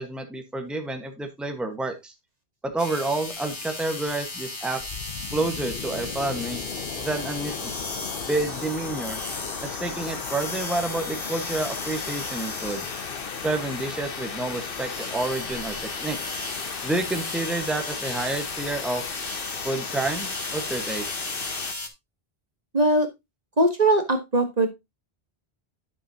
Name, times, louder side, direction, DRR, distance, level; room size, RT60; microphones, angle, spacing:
voice 1, 0.0-2.1 2.6-4.8 5.3-6.6 7.0-7.7 8.2-9.2 9.6-12.8 13.4-15.7 16.0-16.3 16.8-19.0 19.6-21.0, right 2 dB, ahead, 4 dB, 1.2 m, -29 dB
sound 1, 2.8-21.9, left 2 dB, 30° left, 1.1 m, -35 dB
sound 2, 4.8-21.7, left 7 dB, 65° left, 1.0 m, -36 dB
voice 2, 22.7-23.1 23.6-24.7, right 2 dB, 40° right, 6 dB, 1.4 m, -20 dB
11.0 x 6.1 x 2.8 m, 0.21 s
omnidirectional pair, 1.1 m